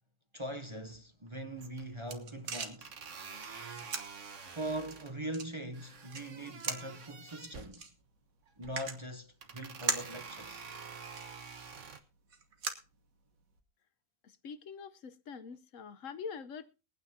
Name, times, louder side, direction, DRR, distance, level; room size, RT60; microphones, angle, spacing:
voice 1, 0.3-2.9 4.5-7.9 8.6-10.7, right 1 dB, 25° right, 0.8 m, -41 dB
sound 1, 0.9-1.3 1.6-2.2 2.8-5.1 5.7-7.8 8.5-8.9 9.4-12.0, right 5 dB, 60° right, 1.6 m, -48 dB
sound 2, 1.5-13.6, right 5 dB, 75° right, 1.9 m, -43 dB
voice 2, 14.2-16.7, left 6 dB, 70° left, 1.2 m, -44 dB
22.5 x 9.2 x 2.8 m
omnidirectional pair, 1.4 m